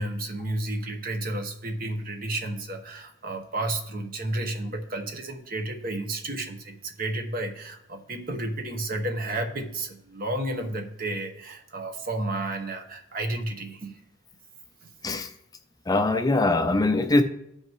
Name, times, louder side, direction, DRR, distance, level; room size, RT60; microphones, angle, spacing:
voice 1, 0.0-14.0 14.8-14.9, right 1 dB, 45° right, 5 dB, 1.0 m, -32 dB
voice 2, 15.9-17.2, left 2 dB, 20° left, 7 dB, 0.4 m, -22 dB
14.5 x 5.6 x 3.1 m, 0.80 s
head